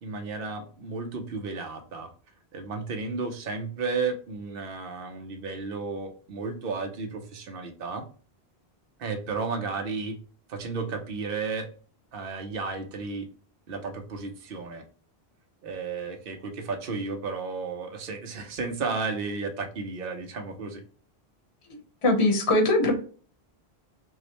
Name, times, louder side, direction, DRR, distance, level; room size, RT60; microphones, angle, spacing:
voice 1, 0.0-2.1 2.5-8.0 9.0-10.2 10.5-11.7 12.1-13.3 13.7-14.8 15.6-20.8, right 4 dB, 60° right, 5 dB, 0.9 m, -33 dB
voice 2, 22.0-22.9, left 2 dB, 30° left, 2 dB, 0.9 m, -21 dB
6.1 x 2.1 x 2.9 m, 0.41 s
omnidirectional pair, 1.1 m